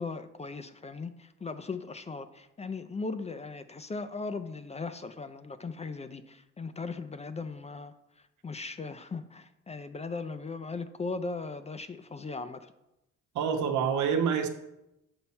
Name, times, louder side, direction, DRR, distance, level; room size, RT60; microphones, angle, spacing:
voice 1, 0.0-7.9 8.4-12.7, left 4 dB, 20° left, 11 dB, 0.4 m, -38 dB
voice 2, 13.3-14.5, right 7 dB, 75° right, 4 dB, 1.0 m, -27 dB
7.1 x 5.7 x 4.3 m, 0.90 s
cardioid pair, 90°, 30 cm